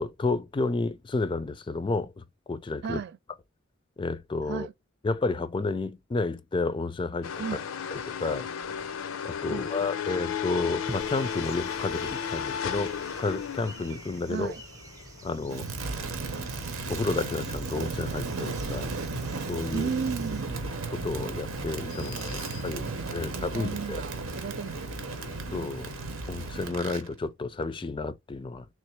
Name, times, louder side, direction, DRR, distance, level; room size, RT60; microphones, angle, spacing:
voice 1, 0.0-2.2 2.5-3.0 4.0-4.7 5.0-7.3 7.9-8.5 9.2-14.5 15.2-15.7 16.9-18.9 19.5-19.9 20.9-24.0 25.5-25.9 26.3-28.7, left 3 dB, 25° left, 0.4 m, -31 dB
voice 2, 2.8-3.2 4.5-4.7 7.4-7.7 9.5-10.0 14.3-14.6 19.7-20.7 22.0-24.9, right 6 dB, 55° right, 0.3 m, -36 dB
sound 1, 7.2-26.7, left 7 dB, 80° left, 0.5 m, -38 dB
sound 2, 10.9-20.4, right 2 dB, 20° right, 0.7 m, -48 dB
Crackle, 15.5-27.1, right 3 dB, 85° right, 0.9 m, -35 dB
3.4 x 3.2 x 3.2 m
head